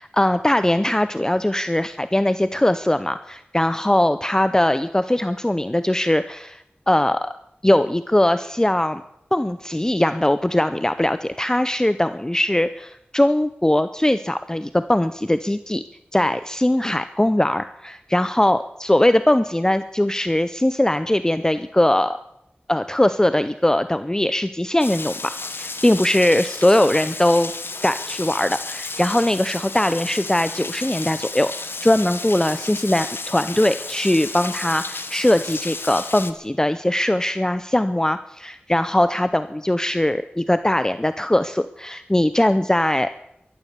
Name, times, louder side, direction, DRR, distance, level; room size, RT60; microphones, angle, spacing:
voice 1, 0.0-6.6 6.9-7.2 7.6-9.0 9.3-15.8 16.1-22.2 22.7-27.5 27.8-43.1, left 1 dB, 15° left, 12 dB, 0.6 m, -20 dB
Rain, 24.8-36.3, left 3 dB, 75° left, 1.2 m, -33 dB
14.5 x 13.5 x 6.8 m, 0.79 s
wide cardioid pair, 60°, 4 cm